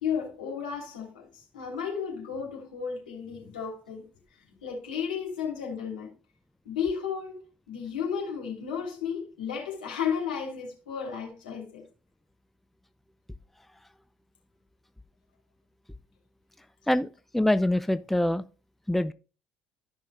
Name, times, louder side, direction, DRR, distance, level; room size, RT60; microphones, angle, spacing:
voice 1, 0.0-4.1 4.6-6.1 6.6-7.4 7.7-11.8, left 7 dB, 75° left, 3.1 m, -33 dB
voice 2, 16.9-18.4 18.9-19.1, left 1 dB, 5° left, 0.5 m, -25 dB
13.0 x 5.6 x 3.3 m
figure-of-eight pair, 55°, 5 cm